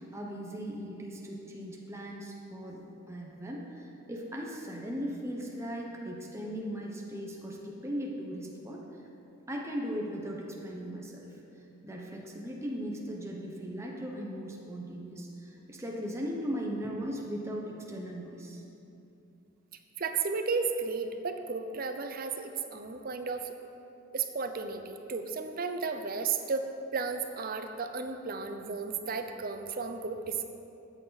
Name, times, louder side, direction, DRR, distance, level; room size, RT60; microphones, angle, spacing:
voice 1, 0.0-8.8 9.5-11.4 11.8-18.6, equal, 15° right, -2 dB, 0.9 m, -38 dB
voice 2, 20.0-23.5 24.1-26.7 26.9-30.4, right 5 dB, 45° right, 7 dB, 0.6 m, -33 dB
12.5 x 8.1 x 4.1 m, 2.9 s
head